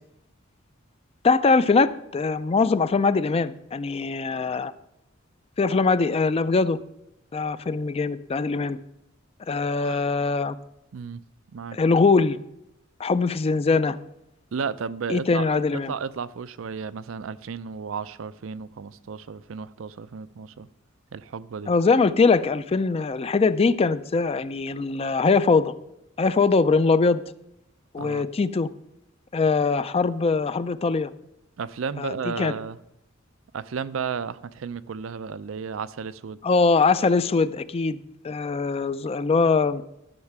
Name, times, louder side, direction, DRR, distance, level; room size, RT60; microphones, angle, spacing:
voice 1, 1.2-4.7 5.6-6.8 7.3-8.8 9.5-10.6 11.7-12.4 13.0-14.0 15.1-15.9 21.7-25.7 26.2-27.2 27.9-28.7 29.3-31.1 32.0-32.5 36.4-39.8, left 4 dB, 30° left, 0.4 m, -22 dB
voice 2, 14.5-20.7 21.1-21.7 28.0-28.3 31.6-32.8 33.5-36.4, right 6 dB, 75° right, 0.5 m, -33 dB
11.5 x 6.5 x 5.9 m
head